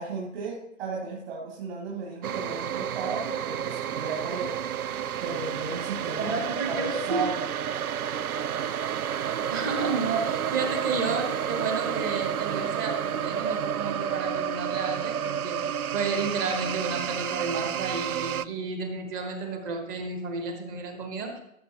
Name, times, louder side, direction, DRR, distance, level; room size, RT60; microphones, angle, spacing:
voice 1, 0.0-4.6 5.2-6.3 6.7-7.4, right 4 dB, 40° right, -4 dB, 2.6 m, -34 dB
sound 1, 2.2-18.5, right 9 dB, 90° right, 0.6 m, -30 dB
voice 2, 6.2-7.3 9.5-21.4, right 4 dB, 15° right, 5 dB, 0.9 m, -32 dB
17.5 x 7.1 x 2.9 m, 0.81 s
hypercardioid pair, 150°, 42 cm